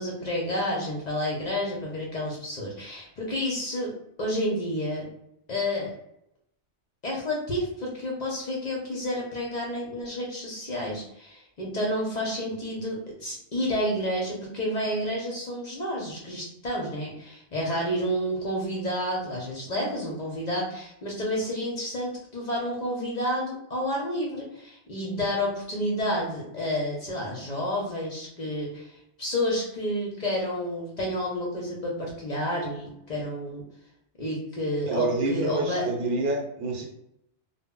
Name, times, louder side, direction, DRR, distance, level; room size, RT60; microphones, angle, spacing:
voice 1, 0.0-3.9 4.2-5.1 5.5-5.9 7.0-33.6 34.2-35.9, equal, 50° left, -2 dB, 0.5 m, -30 dB
voice 2, 34.9-36.9, right 2 dB, 85° right, 0 dB, 1.0 m, -27 dB
2.0 x 2.0 x 3.5 m, 0.79 s
omnidirectional pair, 1.2 m